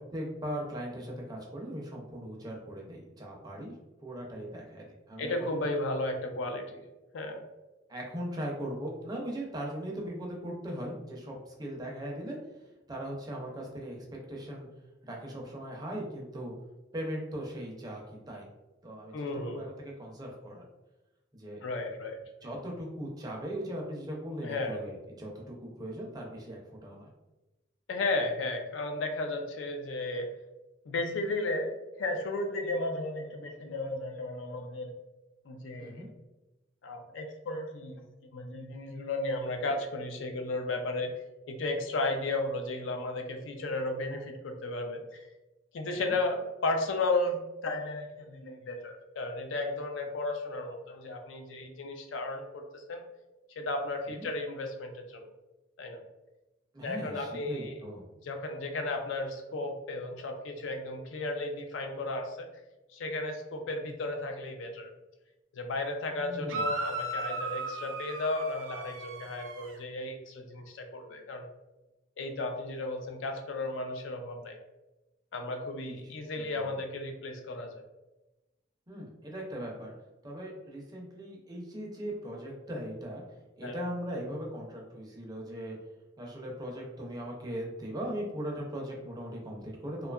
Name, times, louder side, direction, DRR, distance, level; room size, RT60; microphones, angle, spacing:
voice 1, 0.0-3.7 4.0-5.5 7.9-12.4 12.9-14.0 14.3-14.7 15.0-16.5 16.9-18.5 18.8-20.6 21.3-21.6 22.4-27.1 35.8-36.1 45.9-46.0 54.2-54.3 56.7-58.0 66.2-66.7 75.8-76.8 78.9-79.9 80.2-83.2 83.6-85.8 86.2-90.1, equal, 20° right, -1 dB, 0.5 m, -39 dB
voice 2, 5.2-6.8 7.1-7.4 19.1-19.7 21.6-22.2 24.4-24.8 27.9-30.3 30.9-31.7 32.0-34.9 35.5-36.1 36.8-38.0 38.3-41.1 41.5-45.3 45.7-53.0 53.6-55.3 55.8-56.0 56.8-57.8 58.2-62.5 62.9-64.9 65.5-71.5 72.2-74.6 75.3-77.8 83.6-83.7, left 2 dB, 85° left, 4 dB, 0.4 m, -34 dB
sound 1, 66.5-69.7, right 2 dB, 90° right, 0.5 m, -36 dB
2.7 x 2.3 x 2.3 m, 1.0 s
head